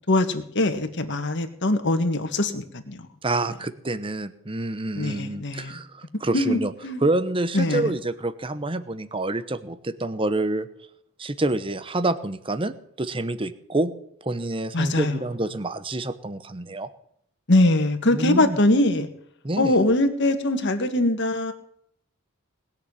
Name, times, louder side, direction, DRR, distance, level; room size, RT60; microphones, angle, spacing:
voice 1, 0.1-3.1 5.0-5.7 6.3-6.6 6.8-7.0 7.5-7.9 14.7-15.2 17.5-19.1 19.6-21.5, left 1 dB, 55° left, 6 dB, 1.9 m, -22 dB
voice 2, 3.2-6.7 7.0-10.7 11.2-13.9 14.2-16.9 18.1-18.6 19.4-19.8, right 2 dB, 25° right, 13 dB, 1.0 m, -27 dB
20.0 x 7.0 x 9.7 m, 0.69 s
head